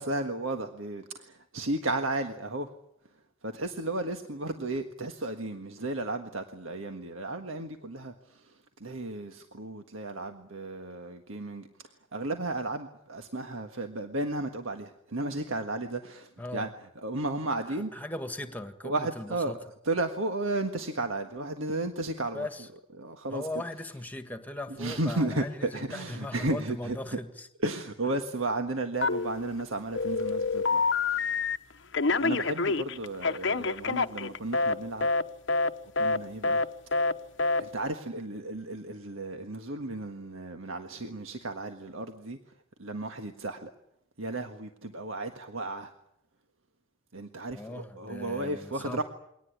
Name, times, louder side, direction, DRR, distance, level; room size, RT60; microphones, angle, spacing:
voice 1, 0.0-2.7 3.4-16.7 16.9-17.9 18.8-19.5 19.8-22.5 23.0-23.5 24.7-27.2 27.6-30.8 31.1-31.4 32.2-35.1 36.0-36.7 37.6-42.4 42.8-43.7 44.2-45.9 47.1-49.0, right 2 dB, 80° right, 6 dB, 1.6 m, -34 dB
voice 2, 16.4-16.7 17.7-19.6 22.3-22.7 23.3-27.5 47.5-49.0, left 1 dB, 10° left, 8 dB, 1.7 m, -39 dB
Telephone, 29.0-29.6 29.9-31.6 31.9-34.7 35.0-35.2 35.5-35.7 36.0-36.2 36.4-36.6 36.9-37.1 37.4-37.6, left 3 dB, 60° left, 0.9 m, -27 dB
23.0 x 18.5 x 10.0 m, 0.80 s
head